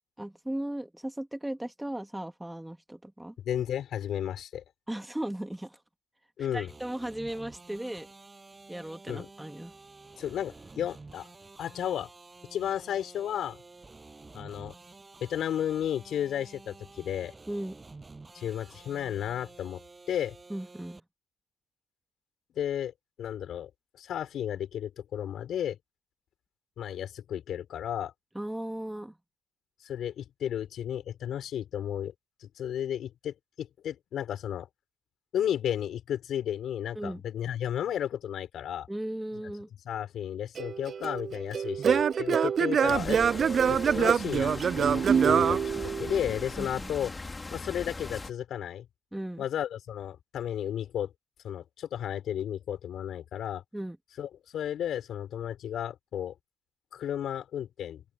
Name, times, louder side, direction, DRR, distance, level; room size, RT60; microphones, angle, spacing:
voice 1, 0.2-3.3 4.9-5.8 6.5-8.1 8.7-9.7 17.5-17.8 20.5-21.0 28.4-29.2 37.0-37.2 38.9-39.7 46.6-46.9 49.1-49.4 53.7-54.0, right 1 dB, 5° right, 1.9 m, -36 dB
voice 2, 3.4-4.6 6.4-6.7 9.1-9.3 10.2-11.3 11.6-12.1 12.5-13.6 14.3-14.7 15.2-17.3 18.3-19.8 20.1-20.3 22.6-22.9 23.2-23.7 24.0-25.8 26.8-28.1 29.8-32.1 32.4-34.7 35.3-38.9 39.9-43.2 43.7-45.6 46.0-47.1 47.5-48.9 49.4-51.1 51.4-53.6 54.2-56.3 56.9-58.0, left 10 dB, 70° left, 6.0 m, -33 dB
sound 1, 6.7-21.0, right 3 dB, 25° right, 7.5 m, -51 dB
Singing / Plucked string instrument, 40.6-46.4, right 7 dB, 50° right, 0.3 m, -25 dB
sound 2, 42.9-48.3, left 3 dB, 25° left, 3.1 m, -40 dB
cardioid pair, 90°, 0 cm